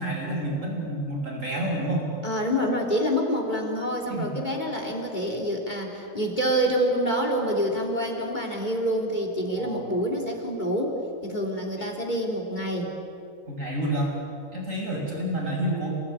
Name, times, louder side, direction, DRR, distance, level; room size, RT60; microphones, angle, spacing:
voice 1, 0.0-2.1 4.1-4.3 9.6-10.0 13.5-14.1 14.5-15.9, right 1 dB, 55° right, -1 dB, 6.6 m, -29 dB
voice 2, 2.2-13.0, equal, 30° left, 2 dB, 3.6 m, -27 dB
29.0 x 19.0 x 9.7 m, 2.5 s
omnidirectional pair, 1.6 m